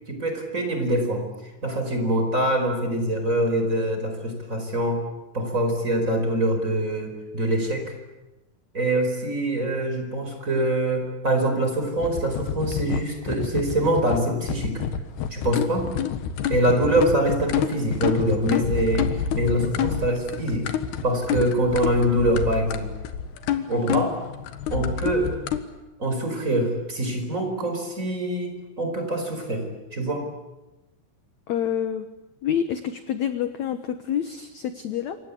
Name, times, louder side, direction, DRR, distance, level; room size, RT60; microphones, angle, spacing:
voice 1, 0.1-1.2 1.6-5.0 5.3-7.9 8.7-14.8 15.3-15.9 16.5-19.1 19.3-20.7 21.0-22.9 23.7-24.2 24.7-25.3 26.0-30.3, right 1 dB, 20° right, 5 dB, 4.7 m, -24 dB
sound 1, 12.0-25.6, left 8 dB, 90° left, 3.6 m, -28 dB
voice 2, 31.5-32.1 32.4-35.2, left 9 dB, 65° left, 9 dB, 1.8 m, -27 dB
28.0 x 25.0 x 8.4 m, 1.0 s
omnidirectional pair, 4.6 m